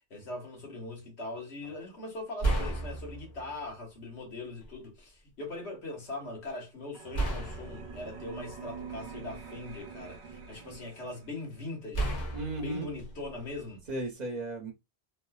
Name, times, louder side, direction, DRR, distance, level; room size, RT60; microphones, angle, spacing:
voice 1, 0.0-12.1 12.6-13.8, left 2 dB, 90° left, 1.5 m, -41 dB
sound 1, 1.6-1.8 2.4-3.7 4.6-4.7 7.1-9.3 9.9-10.7 11.9-14.0, right 2 dB, 45° left, 1.0 m, -34 dB
sound 2, 6.9-11.6, right 5 dB, 85° right, 0.9 m, -45 dB
voice 2, 12.3-12.9 13.9-14.7, right 2 dB, 45° right, 0.8 m, -35 dB
3.1 x 2.4 x 2.3 m
omnidirectional pair, 1.1 m